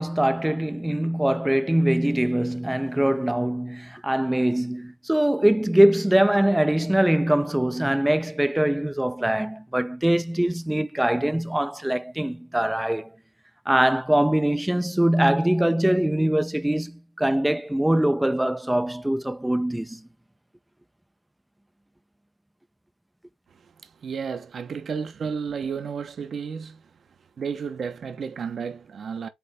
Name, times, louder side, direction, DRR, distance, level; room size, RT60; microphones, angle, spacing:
voice 1, 0.0-13.1 13.7-20.0, right 1 dB, 5° right, 0.6 m, -22 dB
voice 2, 23.5-26.8 27.4-29.3, right 6 dB, 50° right, 1.0 m, -32 dB
8.4 x 3.1 x 3.6 m
cardioid pair, 90°, 0 cm